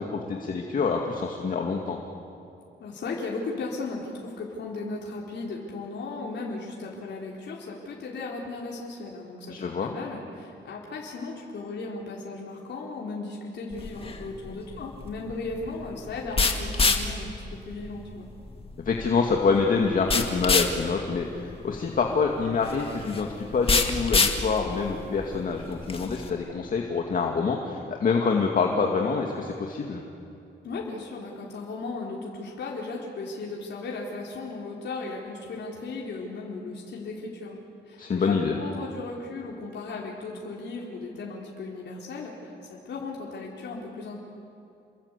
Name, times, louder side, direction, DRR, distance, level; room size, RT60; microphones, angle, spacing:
voice 1, 0.0-2.0 9.5-9.9 18.9-30.0 38.0-38.6, left 5 dB, 45° left, 1 dB, 2.3 m, -26 dB
voice 2, 2.8-18.3 30.6-44.2, left 3 dB, 65° left, -2 dB, 4.2 m, -36 dB
sound 1, 13.7-26.3, left 4 dB, 30° left, 2.2 m, -28 dB
30.0 x 22.5 x 8.4 m, 2.6 s
cardioid pair, 130°, 19 cm